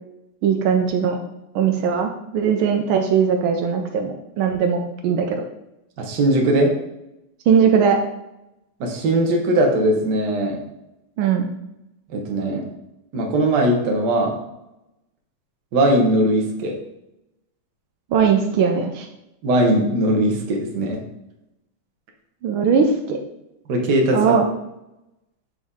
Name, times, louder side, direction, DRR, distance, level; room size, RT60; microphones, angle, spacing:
voice 1, 0.4-1.2 1.5-5.4 7.5-8.0 11.2-11.5 18.1-19.1 22.4-23.2 24.1-24.5, right 6 dB, 85° right, 4 dB, 1.5 m, -19 dB
voice 2, 6.0-6.7 8.8-10.6 12.1-12.7 13.1-14.4 15.7-16.7 19.4-21.0 23.7-24.2, right 1 dB, 60° right, 1 dB, 1.6 m, -19 dB
6.7 x 4.1 x 3.6 m, 0.89 s
omnidirectional pair, 2.2 m